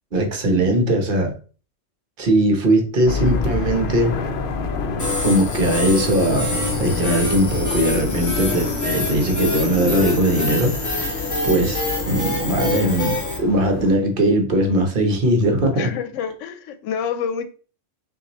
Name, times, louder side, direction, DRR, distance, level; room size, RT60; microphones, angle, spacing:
voice 1, 0.1-1.3 2.2-4.2 5.2-15.9, right 1 dB, 50° right, 1.0 m, -20 dB
sound 1, 3.1-14.0, left 4 dB, 60° left, 0.6 m, -28 dB
sound 2, 5.0-13.4, left 1 dB, 15° left, 0.8 m, -26 dB
voice 2, 15.7-17.4, left 7 dB, 85° left, 0.9 m, -27 dB
5.6 x 2.6 x 3.0 m
omnidirectional pair, 1.3 m